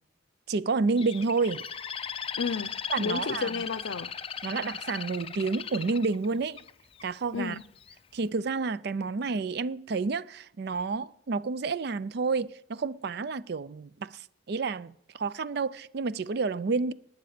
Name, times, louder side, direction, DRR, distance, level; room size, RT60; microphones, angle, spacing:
voice 1, 0.5-1.7 2.9-3.6 4.4-6.6 7.0-7.6 8.1-16.9, right 4 dB, 55° right, 0.4 m, -30 dB
Bird, 1.0-7.0 7.6-8.0, left 7 dB, 30° left, 0.5 m, -37 dB
voice 2, 2.4-4.1 7.3-7.6, left 5 dB, 75° left, 0.6 m, -32 dB
19.0 x 9.4 x 5.0 m
head